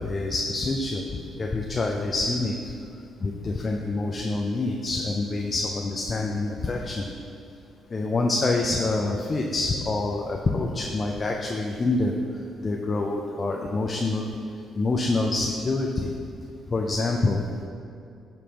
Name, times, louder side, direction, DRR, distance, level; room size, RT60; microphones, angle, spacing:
voice 1, 0.0-2.6 3.2-7.1 7.9-12.1 12.6-14.3 14.8-16.1 16.7-17.6, left 2 dB, 30° left, 1 dB, 0.4 m, -26 dB
6.2 x 5.1 x 2.9 m, 2.5 s
cardioid pair, 100°, 0 cm